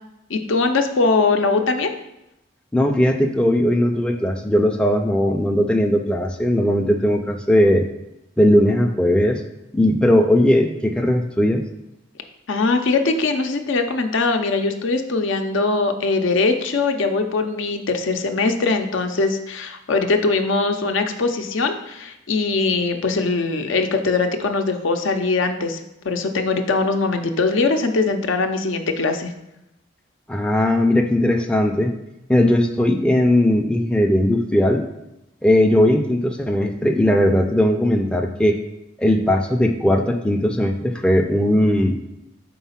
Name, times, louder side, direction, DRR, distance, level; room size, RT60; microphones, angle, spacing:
voice 1, 0.3-1.9 12.5-25.8 26.0-29.3, left 3 dB, 75° left, 6 dB, 0.6 m, -21 dB
voice 2, 2.7-7.8 8.4-9.4 9.7-11.6 30.3-31.9 32.3-34.8 35.4-38.6 39.0-42.0, left 1 dB, 5° left, 3 dB, 0.3 m, -18 dB
4.6 x 3.9 x 5.7 m, 0.88 s
head